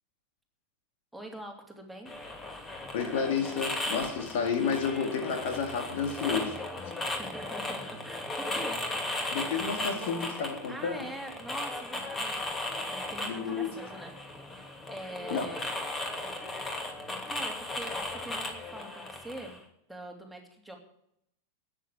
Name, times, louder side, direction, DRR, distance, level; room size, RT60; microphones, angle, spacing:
voice 1, 1.1-2.1 7.0-8.8 10.7-12.5 12.9-14.1 14.6-15.7 17.3-19.6 19.9-20.8, right 1 dB, ahead, 1 dB, 3.0 m, -43 dB
sound 1, 2.1-19.6, left 2 dB, 15° left, 2.8 m, -36 dB
voice 2, 2.9-6.6 9.3-11.1 13.2-13.7 15.3-15.5, left 6 dB, 50° left, 5 dB, 2.1 m, -31 dB
13.5 x 8.7 x 8.7 m, 0.75 s
figure-of-eight pair, 90°, 0 cm